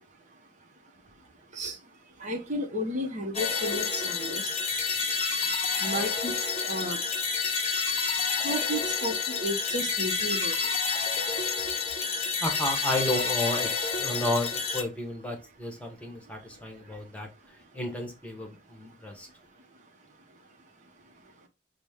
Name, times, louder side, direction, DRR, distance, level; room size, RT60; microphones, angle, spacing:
voice 1, 2.2-4.5 5.8-6.3 6.6-7.0 8.4-10.5, equal, 45° right, 0.8 m, -33 dB
sound 1, 3.3-14.8, left 5 dB, 35° left, 0.6 m, -29 dB
voice 2, 12.4-19.3, left 1 dB, 10° left, 0.9 m, -32 dB
6.0 x 2.1 x 3.4 m
head